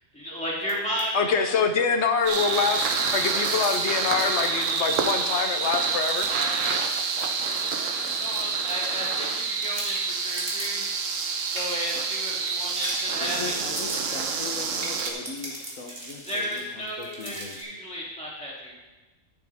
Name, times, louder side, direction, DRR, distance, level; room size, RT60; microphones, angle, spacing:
voice 1, 0.1-1.6 6.3-6.9 7.3-10.9 11.5-13.6 16.2-18.7, equal, 5° left, -7 dB, 3.0 m, -34 dB
sound 1, 0.6-1.1 1.4-1.5 1.9-9.4 9.7-17.6, right 1 dB, 45° right, 2.2 m, -40 dB
voice 2, 1.1-6.3, left 5 dB, 60° left, 7 dB, 1.0 m, -25 dB
sound 2, 2.3-15.1, right 5 dB, 75° right, 1.2 m, -27 dB
voice 3, 13.4-17.6, left 5 dB, 80° left, 3 dB, 1.5 m, -39 dB
14.0 x 6.9 x 3.6 m, 1.2 s
omnidirectional pair, 1.4 m